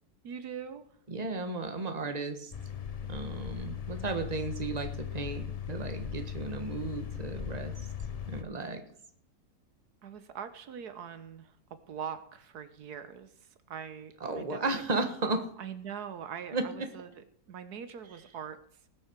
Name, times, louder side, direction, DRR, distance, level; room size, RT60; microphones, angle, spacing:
voice 1, 0.2-0.8 10.0-11.5 11.9-13.3 13.7-14.8 15.6-18.6, right 8 dB, 80° right, 11 dB, 1.5 m, -42 dB
voice 2, 1.1-2.5 3.1-7.7 8.3-8.8 14.2-15.5 16.5-16.6, right 3 dB, 25° right, 6 dB, 1.5 m, -34 dB
sound 1, 2.5-8.4, left 8 dB, 40° left, 0.5 m, -38 dB
19.5 x 8.5 x 4.6 m, 0.64 s
omnidirectional pair, 1.7 m